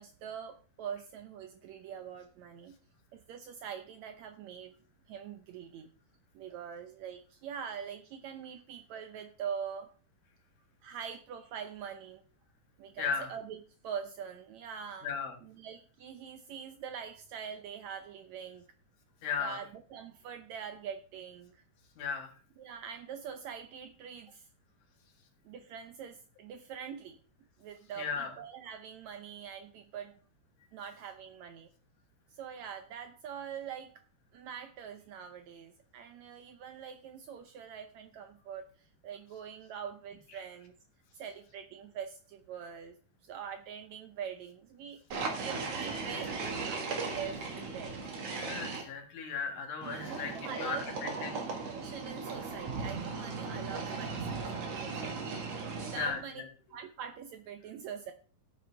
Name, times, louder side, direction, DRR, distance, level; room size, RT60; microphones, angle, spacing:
voice 1, 0.0-2.8 3.1-4.7 5.1-5.9 6.3-9.9 10.8-12.2 12.8-13.6 13.8-15.1 15.4-18.7 19.4-21.6 22.6-24.5 25.5-27.2 27.6-30.2 30.7-31.7 32.3-34.0 34.3-40.7 41.1-43.0 43.2-45.0 45.4-48.0 49.9-50.9 51.1-56.5 56.7-58.1, right 7 dB, 75° right, 8 dB, 1.7 m, -44 dB
voice 2, 13.0-13.3 15.0-15.4 19.2-19.6 22.0-22.3 28.0-28.3 48.3-51.4 55.9-56.4, left 6 dB, 70° left, 3 dB, 3.2 m, -36 dB
sound 1, 45.1-48.8 49.8-56.2, right 4 dB, 50° right, 2.7 m, -37 dB
14.5 x 8.4 x 3.4 m, 0.38 s
omnidirectional pair, 3.9 m